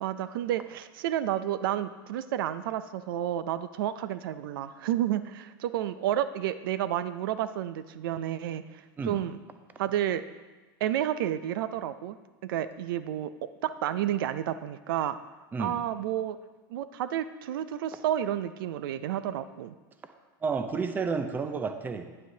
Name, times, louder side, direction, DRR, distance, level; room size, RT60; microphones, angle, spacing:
voice 1, 0.0-9.4 9.8-10.2 10.8-12.2 12.4-13.3 13.6-15.2 15.6-16.4 16.7-19.7, right 11 dB, 75° right, 13 dB, 0.4 m, -31 dB
voice 2, 20.4-22.1, right 5 dB, 15° right, 8 dB, 0.5 m, -31 dB
9.6 x 9.1 x 2.7 m, 1.3 s
supercardioid pair, 135°, 12 cm